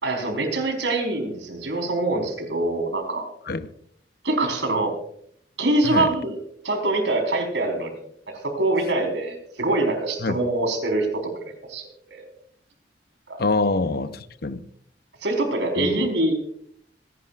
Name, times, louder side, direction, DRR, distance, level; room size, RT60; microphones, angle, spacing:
voice 1, 0.0-3.3 4.2-4.9 5.6-6.4 6.6-8.0 8.3-12.3 13.3-13.4 15.2-16.3, right 2 dB, 90° right, 4.4 m, -24 dB
voice 2, 13.4-14.6 15.8-15.9, left 3 dB, 60° left, 0.8 m, -25 dB
26.5 x 11.5 x 2.5 m
head